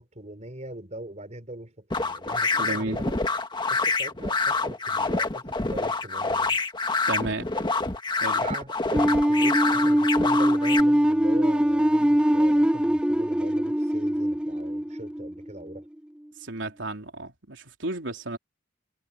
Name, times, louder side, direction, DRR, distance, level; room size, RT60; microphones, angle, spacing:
voice 1, 0.0-3.2 3.7-6.6 8.4-15.9, right 1 dB, 40° right, 4.7 m, -41 dB
sound 1, 1.9-10.8, left 3 dB, 25° left, 1.8 m, -27 dB
voice 2, 2.5-3.0 7.1-7.5 8.2-8.4 16.4-18.4, right 2 dB, 90° right, 3.5 m, -32 dB
sound 2, 8.9-15.8, equal, 5° right, 0.4 m, -22 dB
head